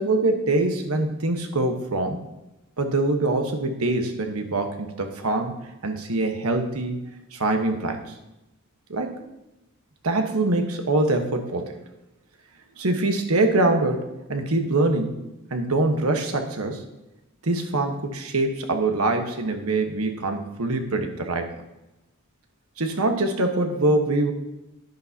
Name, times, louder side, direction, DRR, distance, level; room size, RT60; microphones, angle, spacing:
voice 1, 0.0-2.2 2.8-5.5 5.8-7.0 7.3-8.0 8.9-9.2 10.0-11.8 12.8-15.1 15.5-16.8 17.4-21.5 22.8-24.3, right 2 dB, 80° right, 5 dB, 1.2 m, -24 dB
10.5 x 10.5 x 2.8 m, 0.96 s
head